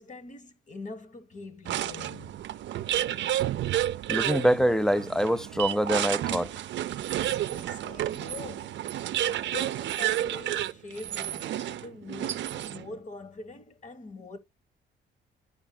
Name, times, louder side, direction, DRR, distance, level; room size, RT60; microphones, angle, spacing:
voice 1, 0.0-2.4 7.5-8.8 9.4-14.4, left 3 dB, 40° left, 1.4 m, -43 dB
sound 1, 1.6-12.9, right 12 dB, 65° right, 0.5 m, -31 dB
voice 2, 4.1-6.5, equal, 5° left, 0.4 m, -25 dB
11.0 x 4.9 x 2.3 m
cardioid pair, 90°, 20 cm